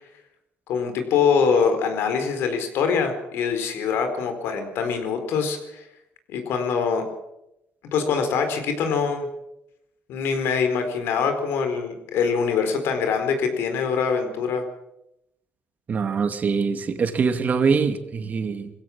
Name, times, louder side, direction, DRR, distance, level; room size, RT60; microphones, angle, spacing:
voice 1, 0.7-5.9 6.3-7.0 7.9-9.3 10.1-14.6, left 6 dB, 80° left, 7 dB, 4.4 m, -24 dB
voice 2, 15.9-18.7, right 5 dB, 40° right, 8 dB, 2.4 m, -23 dB
21.5 x 16.5 x 7.4 m, 0.84 s
cardioid pair, 105°, 4 cm